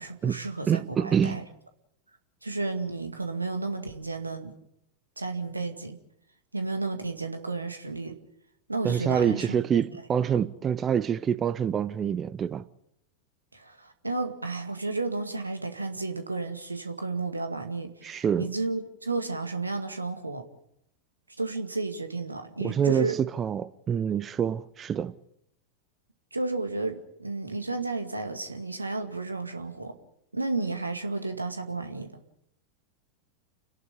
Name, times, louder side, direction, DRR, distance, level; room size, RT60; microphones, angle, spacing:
voice 1, 0.0-1.4 2.4-4.5 5.2-6.0 6.5-8.2 8.7-9.8 13.5-20.4 21.4-23.2 26.3-29.9 30.3-32.1, right 3 dB, 80° right, 2.2 m, -32 dB
voice 2, 0.7-1.4 8.8-12.6 18.0-18.5 22.6-25.1, right 8 dB, 25° right, 0.7 m, -26 dB
30.0 x 11.0 x 9.7 m
figure-of-eight pair, 90°, 0 cm